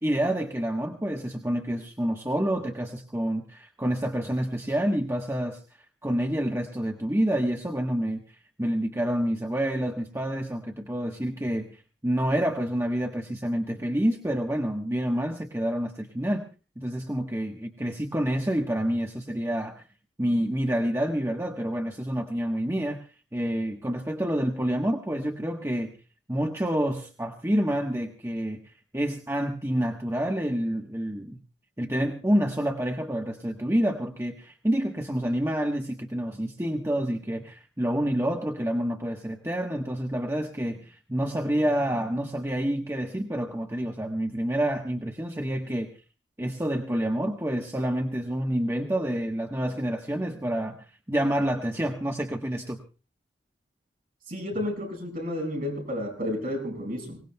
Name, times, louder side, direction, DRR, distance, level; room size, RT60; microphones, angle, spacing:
voice 1, 0.0-5.6 6.0-8.2 8.6-11.7 12.0-16.4 16.8-19.7 20.2-23.0 23.3-25.9 26.3-28.6 28.9-31.4 31.8-45.9 46.4-50.8 51.1-52.8, right 1 dB, 15° right, 2 dB, 1.2 m, -28 dB
voice 2, 54.3-57.2, left 1 dB, 50° right, 1 dB, 5.8 m, -31 dB
24.5 x 18.5 x 2.3 m, 0.34 s
head